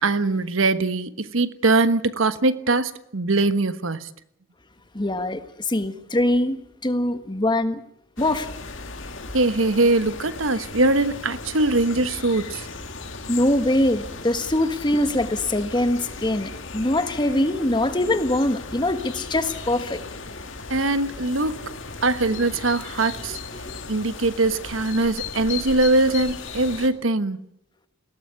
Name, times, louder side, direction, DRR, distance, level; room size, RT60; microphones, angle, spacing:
voice 1, 0.0-4.1 9.3-12.7 20.7-21.7 22.0-23.4 23.9-27.4, right 2 dB, 85° right, 1.3 m, -22 dB
voice 2, 4.9-7.8 8.2-8.5 13.3-20.0 23.6-23.8, left 1 dB, 25° left, 1.5 m, -23 dB
sound 1, 8.2-26.9, left 4 dB, 70° left, 2.1 m, -36 dB
20.5 x 17.0 x 9.6 m
head